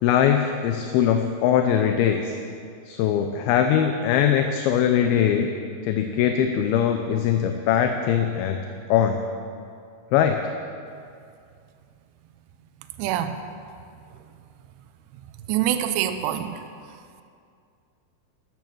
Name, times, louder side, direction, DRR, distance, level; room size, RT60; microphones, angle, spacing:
voice 1, 0.0-2.4 2.9-5.5 5.8-8.6 8.9-9.2 10.1-10.4, left 9 dB, 80° left, 6 dB, 2.5 m, -21 dB
voice 2, 13.0-13.3 15.5-16.5, right 11 dB, 85° right, 8 dB, 2.8 m, -24 dB
13.0 x 13.0 x 6.4 m, 2.3 s
omnidirectional pair, 4.7 m